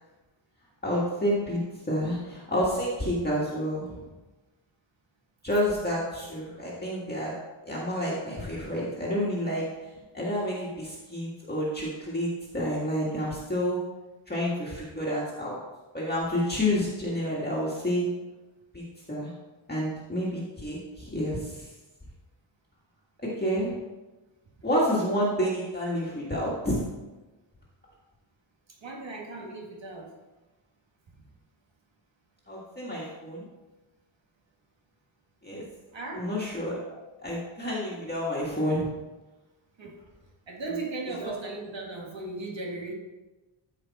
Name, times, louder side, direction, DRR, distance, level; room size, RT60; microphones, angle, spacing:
voice 1, 0.8-4.0 5.4-7.3 7.7-9.7 10.1-13.8 14.3-15.6 15.9-18.1 18.7-19.3 19.7-21.7 23.4-23.7 24.6-26.8 32.5-33.5 35.4-35.7 36.1-36.8 37.2-38.9 41.2-41.3, equal, 20° left, -6 dB, 1.8 m, -29 dB
voice 2, 28.8-30.1 35.9-36.3 39.8-39.9 40.5-42.9, right 3 dB, 60° right, -1 dB, 1.9 m, -37 dB
13.0 x 5.0 x 4.2 m, 1.1 s
wide cardioid pair, 180°, 50 cm